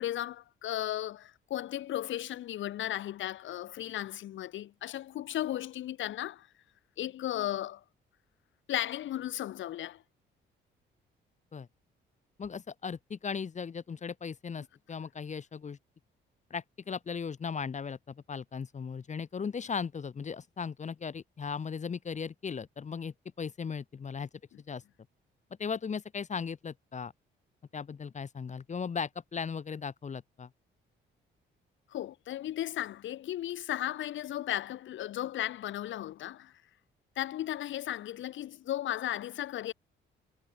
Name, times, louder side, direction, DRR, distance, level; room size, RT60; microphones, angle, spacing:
voice 1, 0.0-6.5 7.0-7.8 8.7-10.0 31.9-36.5 37.2-39.7, left 13 dB, 75° left, 1.9 m, -35 dB
voice 2, 12.4-15.8 16.5-24.3 24.7-24.8 25.6-27.1 27.7-30.5, left 6 dB, 35° left, 1.4 m, -37 dB
cardioid pair, 90°, 20 cm